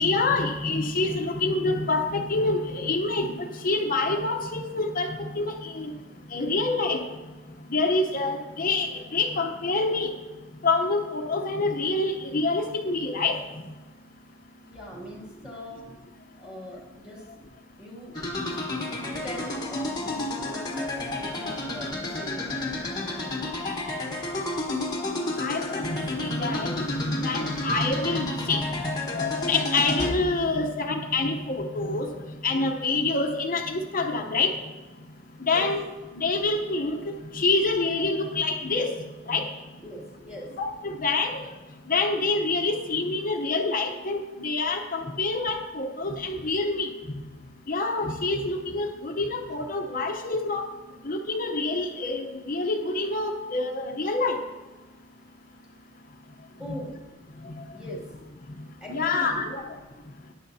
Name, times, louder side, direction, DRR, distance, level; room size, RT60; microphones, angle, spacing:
voice 1, 0.0-3.4 3.6-5.9 6.3-7.0 7.7-10.1 10.6-13.4 25.4-32.1 32.4-34.5 35.4-35.8 36.1-37.0 37.3-38.9 39.3-39.5 40.6-41.4 41.9-46.9 47.7-50.7 51.1-54.4 56.7-56.8 58.9-59.6, left 3 dB, 40° left, 4 dB, 0.8 m, -26 dB
voice 2, 14.6-15.9 16.4-17.3 17.8-18.2 19.0-23.7 35.5-35.8 39.8-40.6 56.6-57.1 57.7-58.2 58.8-59.5, equal, 5° right, -3 dB, 2.4 m, -41 dB
sound 1, 18.1-30.1, left 2 dB, 20° left, 1.2 m, -31 dB
14.5 x 10.0 x 2.8 m, 1.2 s
head